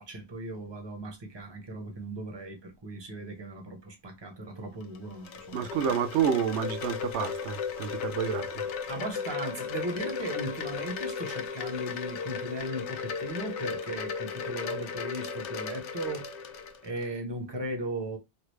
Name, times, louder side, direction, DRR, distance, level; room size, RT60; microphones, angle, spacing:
voice 1, 0.0-5.9 8.9-16.5 16.8-18.2, right 1 dB, 25° right, 0.8 m, -37 dB
Wind chime, 4.8-17.1, left 6 dB, 85° left, 0.9 m, -36 dB
voice 2, 5.5-8.6, right 8 dB, 85° right, 0.9 m, -29 dB
3.1 x 2.4 x 3.1 m
omnidirectional pair, 1.1 m